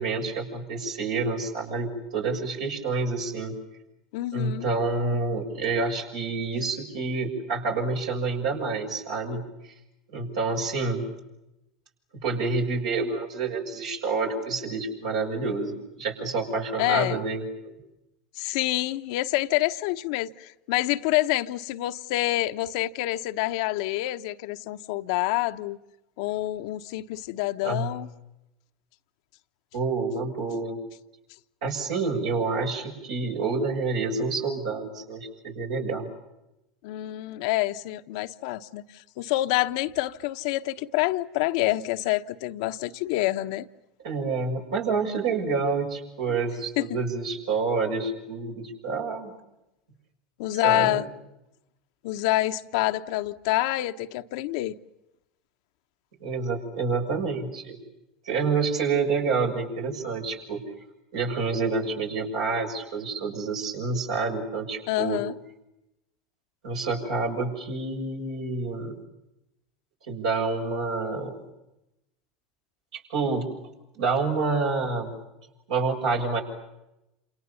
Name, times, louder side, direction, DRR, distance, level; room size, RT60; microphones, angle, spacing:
voice 1, 0.0-3.5 4.3-9.5 10.1-11.1 12.1-17.7 27.6-27.9 29.7-30.8 31.6-36.1 44.0-49.3 50.6-51.0 56.2-57.8 58.2-60.6 61.1-65.2 66.6-68.9 70.1-71.4 72.9-73.5 73.9-75.2 75.7-76.4, right 4 dB, 75° right, 6.9 m, -28 dB
voice 2, 4.1-4.7 16.8-17.2 18.4-25.8 26.2-28.1 36.8-43.7 46.3-46.4 46.8-47.0 50.4-51.1 52.0-54.7 64.9-65.3, left 17 dB, 65° left, 1.0 m, -27 dB
28.5 x 27.5 x 7.1 m
hypercardioid pair, 80°, 3 cm